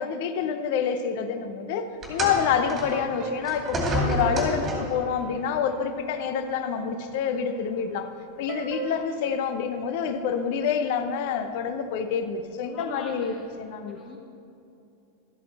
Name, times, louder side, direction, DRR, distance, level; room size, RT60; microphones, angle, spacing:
voice 1, 0.0-8.1 8.4-14.0, left 7 dB, 50° left, 8 dB, 0.8 m, -27 dB
sound 1, 2.0-5.1 6.1-6.2 7.1-7.2, equal, 20° right, 2.5 m, -29 dB
sound 2, 2.4-6.2 8.5-10.3, right 4 dB, 35° right, 1.4 m, -38 dB
voice 2, 12.7-13.5 13.9-14.2, left 4 dB, 25° left, 1 dB, 1.5 m, -41 dB
12.5 x 8.4 x 4.2 m, 2.7 s
figure-of-eight pair, 90°, 0 cm